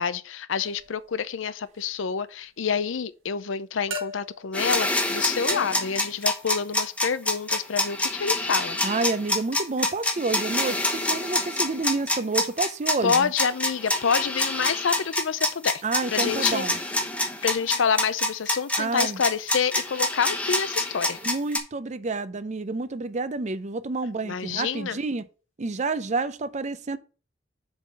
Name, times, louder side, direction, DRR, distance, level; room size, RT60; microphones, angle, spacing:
voice 1, 0.0-8.8 13.0-15.8 16.1-16.6 17.4-21.2 24.2-25.0, left 6 dB, 75° left, 0.5 m, -27 dB
sound 1, 0.6-1.0 3.9-4.5 5.5-6.1, left 1 dB, 80° right, 1.7 m, -36 dB
sound 2, 4.5-21.6, left 1 dB, 5° left, 1.1 m, -26 dB
voice 2, 8.8-13.3 15.8-16.8 18.8-19.2 21.2-25.2 25.6-27.0, right 3 dB, 35° right, 0.5 m, -29 dB
7.0 x 3.8 x 6.2 m
head